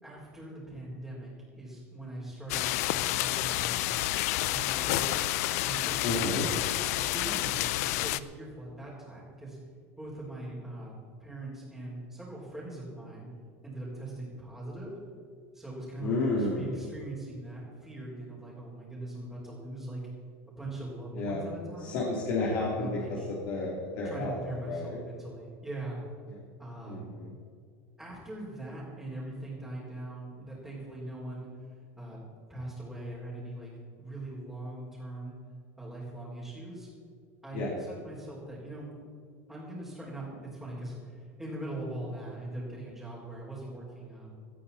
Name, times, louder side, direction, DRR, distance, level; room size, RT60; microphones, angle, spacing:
voice 1, 0.0-3.9 4.4-5.2 5.6-6.5 7.0-9.6 10.0-13.3 13.6-15.0 15.5-20.0 20.5-22.0 22.7-23.3 24.0-26.0 26.6-27.1 28.0-31.5 32.0-33.7 34.0-35.4 35.8-36.9 37.4-38.9 39.5-44.3, right 1 dB, 5° right, -9 dB, 4.2 m, -41 dB
sound 1, 2.5-8.2, left 16 dB, 75° left, 0.5 m, -29 dB
voice 2, 6.0-6.5 16.0-16.8 21.1-21.4 21.8-25.0 26.3-26.4 26.8-27.3 37.5-37.7, left 2 dB, 60° left, -5 dB, 3.2 m, -32 dB
18.5 x 12.5 x 4.3 m, 2.2 s
supercardioid pair, 145°, 8 cm